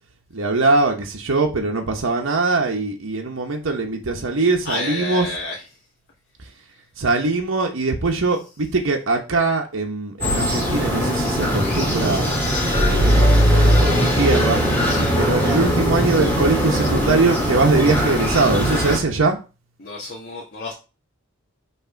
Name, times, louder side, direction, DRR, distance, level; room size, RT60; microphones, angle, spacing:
voice 1, 0.3-5.3 7.0-12.3 12.7-13.1 13.5-14.6 15.2-19.4, right 3 dB, 70° right, 1.0 m, -21 dB
voice 2, 4.6-5.6 14.9-15.2 19.8-20.7, left 2 dB, 50° left, 1.3 m, -30 dB
sound 1, 10.2-19.0, equal, 10° left, 2.0 m, -19 dB
5.8 x 3.3 x 5.7 m
head